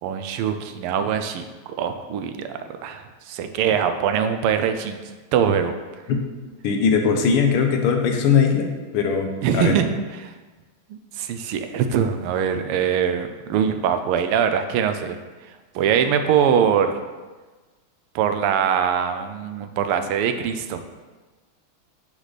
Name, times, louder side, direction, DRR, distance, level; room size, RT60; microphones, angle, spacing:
voice 1, 0.0-5.0 5.3-5.7 9.4-10.3 10.9-15.2 15.7-16.9 18.1-20.8, right 8 dB, 90° right, 8 dB, 1.5 m, -23 dB
voice 2, 6.6-8.7 8.9-9.3 9.5-9.7, left 6 dB, 85° left, 4 dB, 1.7 m, -19 dB
9.7 x 4.0 x 3.3 m, 1.3 s
omnidirectional pair, 2.4 m